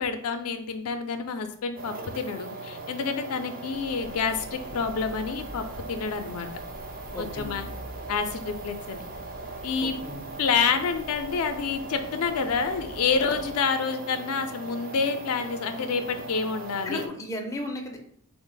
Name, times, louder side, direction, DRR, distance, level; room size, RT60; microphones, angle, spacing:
voice 1, 0.0-6.5 7.2-7.7 8.1-9.0 9.6-9.9 10.4-17.0, left 5 dB, 75° left, 7 dB, 0.4 m, -28 dB
sound 1, 1.8-17.1, right 3 dB, 40° right, 0.4 m, -40 dB
sound 2, 3.7-13.5, equal, 90° right, 0.8 m, -46 dB
voice 2, 7.1-7.5 9.8-10.3 16.8-18.0, left 1 dB, 15° left, 1 dB, 0.4 m, -35 dB
3.3 x 2.0 x 3.7 m, 0.65 s
head